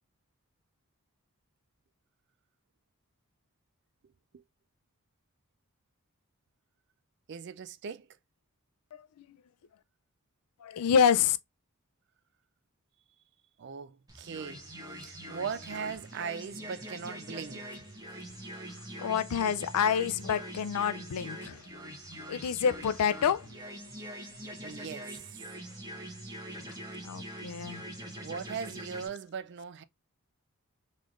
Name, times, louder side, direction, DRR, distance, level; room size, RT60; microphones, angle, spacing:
voice 1, 7.3-8.1 13.6-17.8 24.6-25.3 28.2-29.8, right 6 dB, 50° right, 0.4 m, -39 dB
voice 2, 8.9-9.2 10.6-11.4 19.0-21.6 22.3-23.5 27.0-27.8, left 7 dB, 90° left, 0.4 m, -28 dB
sound 1, 14.1-29.1, right 1 dB, 15° right, 1.1 m, -43 dB
3.7 x 3.2 x 2.4 m
head